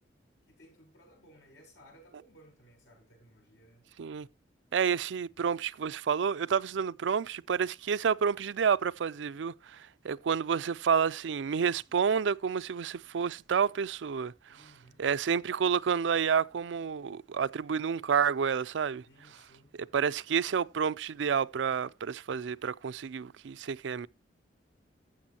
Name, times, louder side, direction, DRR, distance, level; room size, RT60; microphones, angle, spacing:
voice 1, 0.5-3.9 14.5-15.0 19.0-19.7, equal, 75° left, 6.9 m, -59 dB
voice 2, 4.7-9.8 10.0-14.3 15.0-19.0 19.9-24.1, right 7 dB, 85° right, 0.4 m, -29 dB
15.0 x 7.0 x 2.8 m
head